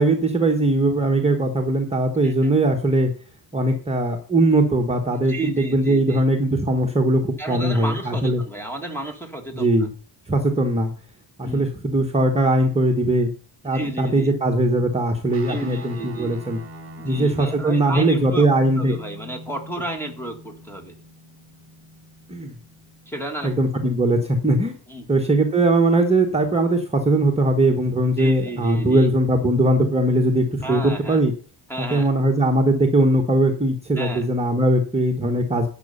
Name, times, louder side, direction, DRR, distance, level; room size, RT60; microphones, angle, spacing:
voice 1, 0.0-3.1 3.5-8.4 9.5-9.9 10.3-10.9 11.4-13.3 13.6-16.6 17.0-18.9 22.3-22.5 23.4-24.8 25.1-31.3 31.8-35.7, right 1 dB, 15° right, 0 dB, 1.2 m, -20 dB
voice 2, 5.3-6.2 7.4-9.7 11.4-11.7 13.6-14.3 15.5-16.4 17.0-18.5 18.8-20.9 23.1-23.6 24.9-25.1 28.2-29.1 30.6-31.2 31.7-32.1 34.0-34.3, right 2 dB, 5° left, 4 dB, 1.7 m, -32 dB
Guitar, 15.3-24.1, equal, 30° right, 2.8 m, -42 dB
11.5 x 8.1 x 5.6 m, 0.40 s
cardioid pair, 170°, 48 cm